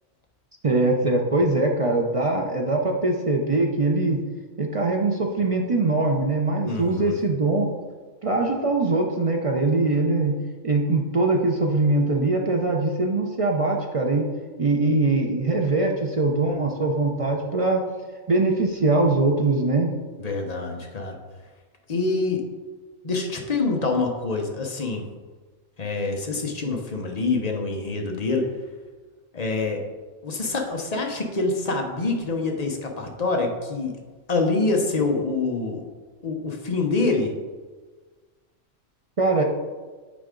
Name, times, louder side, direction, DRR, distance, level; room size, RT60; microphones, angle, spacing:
voice 1, 0.6-4.2 4.6-7.7 8.2-10.4 10.6-14.3 14.6-17.8 18.3-19.9 39.2-39.4, right 2 dB, 60° right, 1 dB, 0.3 m, -22 dB
voice 2, 6.6-7.2 20.2-21.2 21.9-22.4 23.0-25.0 25.8-28.5 29.3-29.8 30.2-33.9 34.3-35.9 36.2-37.3, left 3 dB, 35° left, 2 dB, 0.8 m, -26 dB
8.3 x 4.7 x 3.8 m, 1.4 s
omnidirectional pair, 1.5 m